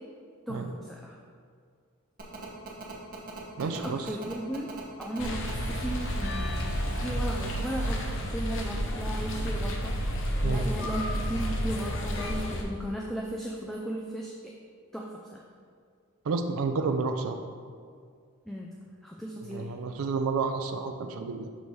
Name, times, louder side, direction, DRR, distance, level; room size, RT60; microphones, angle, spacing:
voice 1, 0.5-1.2 3.6-4.7 5.0-10.1 10.4-14.5 14.9-15.5 18.5-18.7 19.0-19.7, right 1 dB, ahead, -2 dB, 0.3 m, -36 dB
Telephone, 2.2-7.9, right 3 dB, 40° right, 1.0 m, -43 dB
voice 2, 3.6-4.1 10.4-10.7 16.3-17.4 19.4-21.5, right 4 dB, 70° right, 6 dB, 0.4 m, -30 dB
sound 1, 5.2-12.6, equal, 60° left, 0.7 m, -31 dB
6.0 x 3.2 x 5.4 m, 2.1 s
head